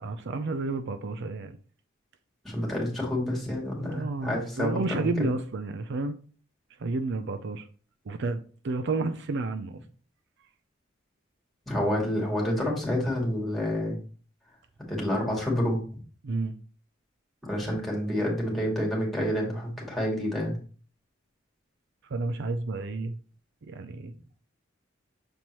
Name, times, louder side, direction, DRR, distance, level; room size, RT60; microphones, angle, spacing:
voice 1, 0.0-1.6 3.8-6.1 6.8-7.6 8.1-8.4 8.6-9.8 16.2-16.5 22.1-23.2 23.6-24.1, right 3 dB, 60° right, 0.5 m, -31 dB
voice 2, 2.4-5.3 11.7-14.0 14.9-15.8 17.4-20.6, left 1 dB, ahead, 2.4 m, -28 dB
7.1 x 4.4 x 3.0 m
head